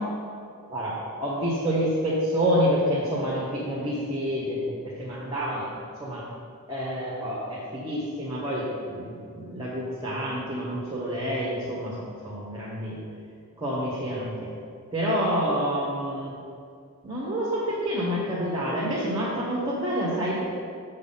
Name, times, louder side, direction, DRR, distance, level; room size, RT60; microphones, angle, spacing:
voice 1, 0.7-5.7 6.0-6.2 6.7-13.0 13.6-14.5 14.9-16.4 17.0-20.4, equal, 15° right, -7 dB, 1.6 m, -28 dB
7.7 x 6.4 x 5.8 m, 2.3 s
head